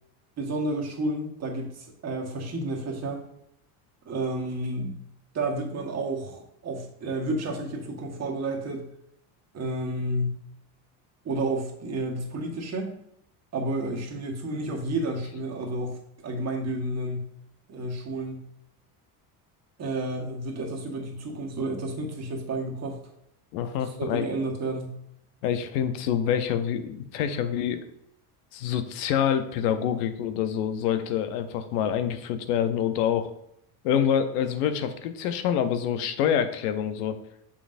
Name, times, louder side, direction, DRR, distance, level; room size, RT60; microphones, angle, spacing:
voice 1, 0.4-3.2 4.0-5.0 5.3-8.9 9.5-10.4 11.2-12.9 13.5-17.3 17.7-18.5 19.8-23.0 23.8-25.0, right 2 dB, 35° right, 1 dB, 1.4 m, -31 dB
voice 2, 23.5-24.3 25.4-27.8 28.5-33.3 33.8-37.2, left 9 dB, 85° left, 9 dB, 0.8 m, -26 dB
6.4 x 5.7 x 2.6 m, 0.77 s
supercardioid pair, 125°, 45 cm